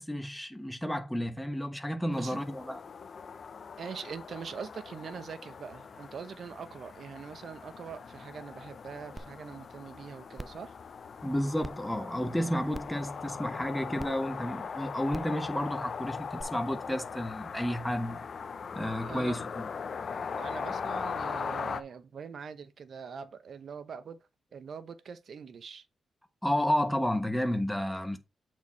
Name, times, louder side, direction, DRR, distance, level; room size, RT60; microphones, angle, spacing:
voice 1, 0.0-2.8 11.2-18.2 18.7-19.6 26.4-28.2, equal, 5° left, 1.2 m, -31 dB
sound 1, 2.1-21.8, left 6 dB, 55° left, 0.7 m, -40 dB
voice 2, 3.8-10.7 19.0-19.4 20.4-24.2 24.5-25.8, right 6 dB, 60° right, 0.9 m, -43 dB
sound 2, 9.2-9.3 9.7-9.8 10.3-10.6 11.6-11.7 12.7-13.0 14.0-14.1 15.1-15.3 16.4-16.5, right 2 dB, 15° right, 0.5 m, -41 dB
8.0 x 4.7 x 4.2 m
cardioid pair, 85°, 0 cm